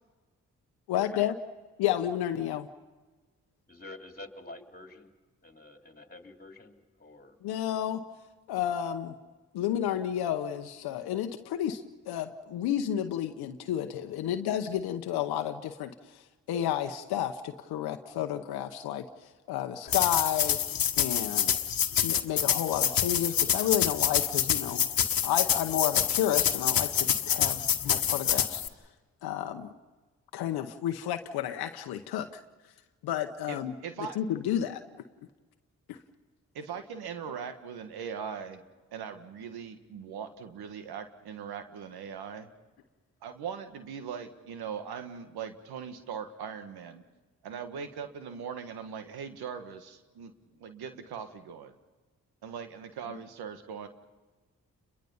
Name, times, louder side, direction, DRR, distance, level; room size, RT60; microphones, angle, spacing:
voice 1, 0.9-1.4 1.8-2.7 7.4-8.0 8.5-9.1 9.5-16.2 16.5-19.0 19.5-20.6 21.0-21.6 22.0-24.8 25.2-28.6 29.2-29.7 30.3-32.3 33.0-33.7 34.2-34.8 35.9-36.0, left 11 dB, 90° left, 6 dB, 0.9 m, -31 dB
voice 2, 3.7-5.1 5.4-7.4, left 2 dB, 25° left, 4 dB, 3.2 m, -48 dB
sound 1, 19.9-28.7, left 9 dB, 65° left, 1.4 m, -27 dB
voice 3, 33.5-34.2 36.5-38.6 38.9-42.5 43.2-47.0 47.4-50.3 50.6-51.7 52.4-53.9, right 7 dB, 85° right, 8 dB, 1.6 m, -40 dB
29.5 x 22.5 x 5.5 m, 1.3 s
supercardioid pair, 45°, 37 cm